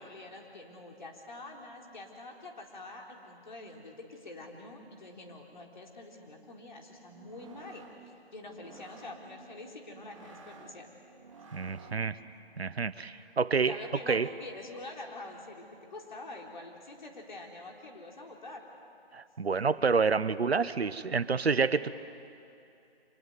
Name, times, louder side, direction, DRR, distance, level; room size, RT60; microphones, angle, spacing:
voice 1, 0.0-10.9 13.7-18.7, left 2 dB, 45° left, 1 dB, 3.9 m, -46 dB
sound 1, 7.0-12.3, right 4 dB, 30° right, 1.7 m, -54 dB
voice 2, 11.5-12.1 12.6-13.8 14.1-14.3 19.1-21.9, right 5 dB, 75° right, 15 dB, 1.0 m, -28 dB
26.0 x 18.5 x 9.6 m, 2.7 s
figure-of-eight pair, 170°, 32 cm